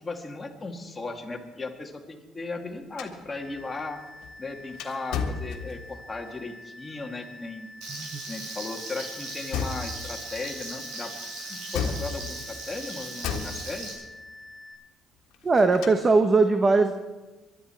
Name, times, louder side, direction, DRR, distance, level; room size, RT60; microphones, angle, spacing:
voice 1, 0.0-4.0 4.4-7.7 8.3-11.1 11.5-13.9, left 3 dB, 20° left, 2 dB, 2.1 m, -36 dB
sound 1, 3.0-6.1 9.5-10.2 11.7-12.6 13.2-14.1 15.3-16.2, left 6 dB, 85° left, 1.5 m, -34 dB
sound 2, 3.3-14.7, left 1 dB, 45° right, 6.4 m, -47 dB
Frying (food), 7.8-13.9, right 2 dB, 90° right, 5.9 m, -38 dB
voice 2, 7.9-8.2 15.4-16.9, right 3 dB, 25° right, 7 dB, 0.9 m, -20 dB
22.5 x 12.0 x 4.5 m, 1.2 s
cardioid pair, 110°, 0 cm